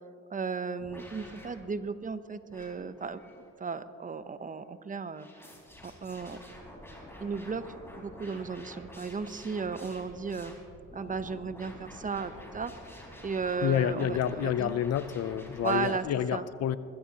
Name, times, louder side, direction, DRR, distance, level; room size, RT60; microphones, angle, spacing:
voice 1, 0.3-3.2 3.6-5.3 5.8-6.4 7.2-7.6 8.0-10.5 10.9-12.7 13.2-14.7 15.6-16.0 16.3-16.4, right 5 dB, 25° right, 12 dB, 0.7 m, -35 dB
sound 1, 0.8-1.5 2.5-3.5 5.1-16.0, left 1 dB, 10° left, 4.1 m, -48 dB
voice 2, 13.6-16.8, left 9 dB, 55° left, 15 dB, 0.5 m, -29 dB
21.0 x 15.0 x 2.9 m, 2.6 s
cardioid pair, 90°, 30 cm